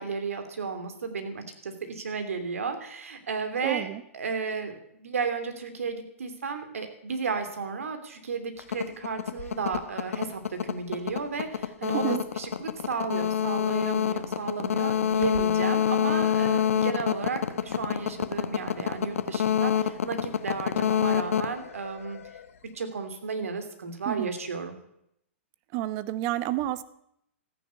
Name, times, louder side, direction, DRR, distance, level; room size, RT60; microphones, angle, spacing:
voice 1, 0.0-3.9 4.1-22.2 22.7-24.8, right 5 dB, 85° right, 7 dB, 2.9 m, -33 dB
voice 2, 3.6-4.0 11.9-12.2 24.1-24.3 25.7-26.8, right 14 dB, 40° right, 14 dB, 1.0 m, -29 dB
sound 1, 8.6-22.4, left 9 dB, 80° left, 1.1 m, -27 dB
14.0 x 10.0 x 8.3 m, 0.74 s
hypercardioid pair, 130°, 7 cm